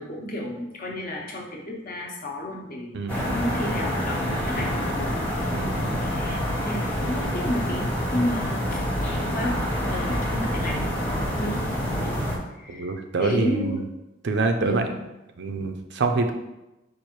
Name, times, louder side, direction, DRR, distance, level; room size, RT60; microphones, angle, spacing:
voice 1, 0.0-5.1 5.4-5.6 6.0-8.8 9.3-10.9 11.3-12.3 12.6-12.9 13.2-13.8 14.6-14.8, left 1 dB, 45° left, 0 dB, 0.9 m, -32 dB
sound 1, 3.1-12.4, equal, 10° left, 0.9 m, -27 dB
voice 2, 5.5-6.0 12.7-13.8 14.2-14.8 15.4-16.3, right 3 dB, 65° right, 6 dB, 0.5 m, -26 dB
4.7 x 2.5 x 4.5 m, 0.96 s
head